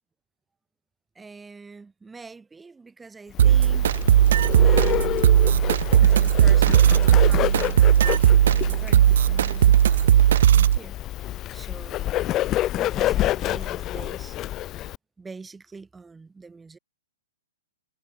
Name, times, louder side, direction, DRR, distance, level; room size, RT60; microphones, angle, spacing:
voice 1, 1.1-3.9 4.4-5.3 6.0-12.5 12.7-14.4 15.2-16.8, right 4 dB, 10° right, 7.7 m, -44 dB
Bird, 3.3-15.0, left 14 dB, 30° left, 1.7 m, -28 dB
sound 1, 3.4-10.8, right 10 dB, 65° right, 1.4 m, -17 dB
hypercardioid pair, 125°, 0 cm